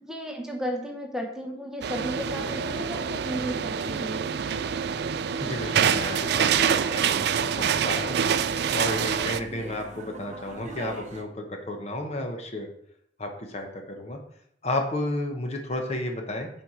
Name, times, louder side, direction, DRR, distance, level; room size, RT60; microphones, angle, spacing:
voice 1, 0.0-4.3, equal, 5° right, 1 dB, 0.8 m, -34 dB
sound 1, 1.8-9.4, right 7 dB, 60° right, 0.4 m, -26 dB
sound 2, 2.0-11.2, right 2 dB, 40° right, 0.7 m, -43 dB
voice 2, 5.4-8.2 8.7-12.7 13.2-14.2 14.6-16.5, left 1 dB, 35° left, 3 dB, 1.0 m, -32 dB
6.9 x 4.5 x 4.9 m, 0.72 s
head